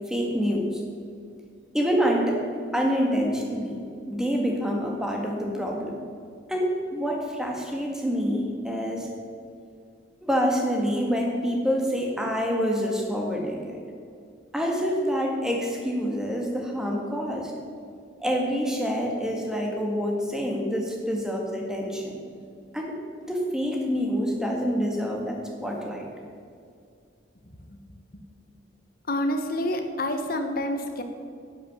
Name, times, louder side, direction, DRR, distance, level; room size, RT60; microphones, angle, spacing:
voice 1, 0.1-0.8 1.7-2.4 2.7-3.8 4.1-6.0 6.5-9.1 10.2-13.8 14.5-17.5 18.2-22.1 22.7-26.1, equal, 5° right, 0 dB, 1.8 m, -27 dB
voice 2, 29.1-31.0, left 1 dB, 50° left, 6 dB, 1.3 m, -28 dB
11.0 x 9.0 x 7.2 m, 2.3 s
head